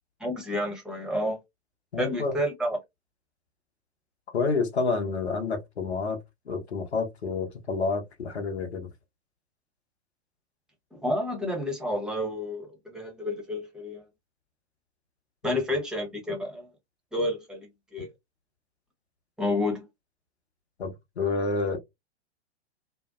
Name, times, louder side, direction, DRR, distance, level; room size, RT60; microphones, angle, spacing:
voice 1, 0.2-1.4 2.0-2.8 10.9-14.0 15.4-16.7 17.1-18.1 19.4-19.9, left 1 dB, ahead, 0.8 m, -30 dB
voice 2, 1.9-2.3 4.3-6.2 6.5-8.9 15.4-15.6 20.8-21.8, left 4 dB, 75° left, 0.9 m, -29 dB
2.6 x 2.1 x 2.3 m
figure-of-eight pair, 100°, 33 cm